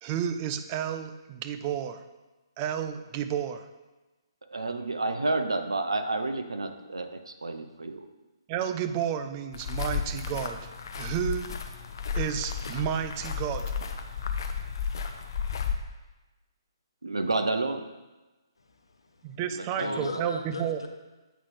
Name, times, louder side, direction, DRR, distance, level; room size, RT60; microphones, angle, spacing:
voice 1, 0.0-2.0 2.6-3.7 8.5-11.5 12.1-13.7 19.2-20.8, right 9 dB, 30° right, 8 dB, 0.4 m, -31 dB
voice 2, 4.5-8.1 17.0-17.9 19.5-20.2, right 2 dB, 80° right, 7 dB, 0.6 m, -30 dB
sound 1, 9.5-15.7, left 6 dB, 55° left, 0.6 m, -33 dB
voice 3, 18.6-19.3 19.8-20.9, left 2 dB, 75° left, 5 dB, 0.9 m, -38 dB
8.0 x 5.6 x 3.2 m, 1.1 s
figure-of-eight pair, 130°, 3 cm